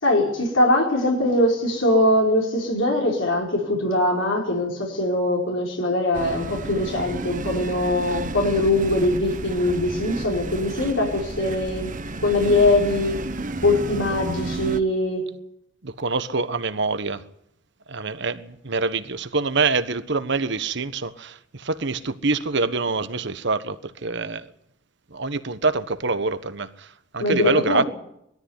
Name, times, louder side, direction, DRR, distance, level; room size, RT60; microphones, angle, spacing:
voice 1, 0.0-11.9 12.2-13.2 13.6-15.3 27.2-27.9, left 1 dB, 85° left, 4.8 m, -22 dB
sound 1, 6.1-14.8, right 2 dB, 45° right, 1.1 m, -32 dB
voice 2, 15.8-17.2 17.9-23.8 24.0-24.5 25.1-26.7 27.1-27.8, right 3 dB, 65° right, 1.4 m, -25 dB
21.0 x 14.0 x 9.7 m
head